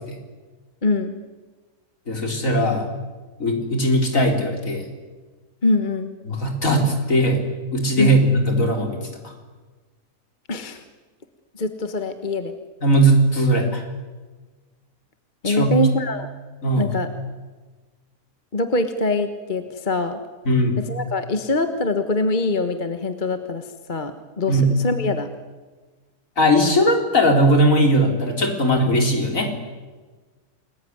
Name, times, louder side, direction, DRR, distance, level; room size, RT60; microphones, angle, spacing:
voice 1, 0.8-1.2 5.6-6.1 8.0-8.2 10.5-10.8 11.5-12.5 15.4-16.3 16.7-17.1 18.5-20.2 20.9-25.3, left 2 dB, 30° left, 8 dB, 1.4 m, -23 dB
voice 2, 2.1-2.9 3.4-4.9 6.3-9.3 12.8-13.8 15.4-15.8 16.6-17.0 20.5-20.8 24.5-24.8 26.4-29.5, equal, 55° left, 3 dB, 4.4 m, -19 dB
29.0 x 20.5 x 9.6 m, 1.3 s
omnidirectional pair, 1.6 m